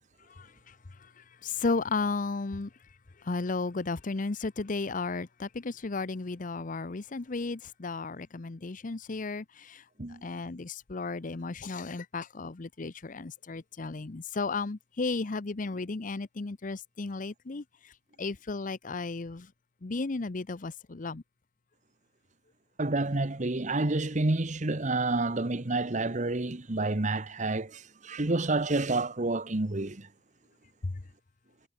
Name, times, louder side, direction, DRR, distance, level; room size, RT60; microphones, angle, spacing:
voice 1, 0.3-0.7 1.4-2.7 3.2-9.8 10.2-17.6 18.2-19.5 19.8-21.2 30.8-30.9, left 3 dB, 45° left, 0.7 m, -34 dB
voice 2, 22.8-30.1, right 2 dB, 45° right, 1.2 m, -29 dB
head